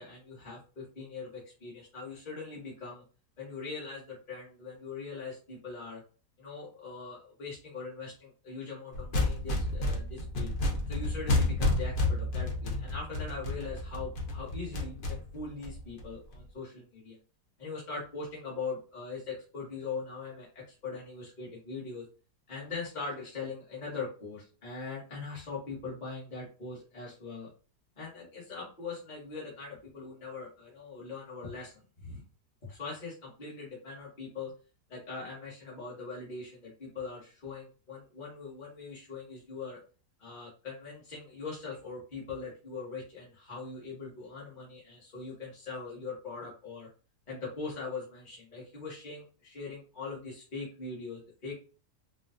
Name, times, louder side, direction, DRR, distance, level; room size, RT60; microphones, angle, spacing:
voice 1, 0.0-3.0 3.4-6.0 6.4-10.5 10.9-17.2 17.6-22.1 22.5-27.5 28.0-32.2 32.6-34.5 34.9-39.8 40.2-46.9 47.3-51.5, left 4 dB, 30° left, -6 dB, 1.0 m, -41 dB
sound 1, 8.9-16.4, left 2 dB, 80° left, 0.4 m, -31 dB
4.2 x 2.3 x 2.5 m, 0.36 s
omnidirectional pair, 1.8 m